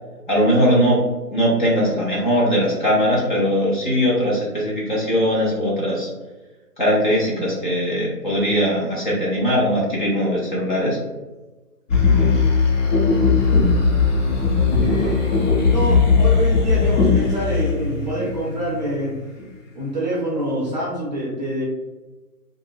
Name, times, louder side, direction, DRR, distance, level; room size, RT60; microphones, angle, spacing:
voice 1, 0.3-1.0 1.3-6.1 6.8-11.0, equal, 30° left, -5 dB, 0.6 m, -20 dB
sound 1, 11.9-18.8 19.4-19.5, left 4 dB, 50° left, 1.1 m, -18 dB
voice 2, 14.1-19.1 19.7-21.6, right 1 dB, 30° right, -5 dB, 0.6 m, -27 dB
2.5 x 2.0 x 3.6 m, 1.1 s
hypercardioid pair, 155°, 47 cm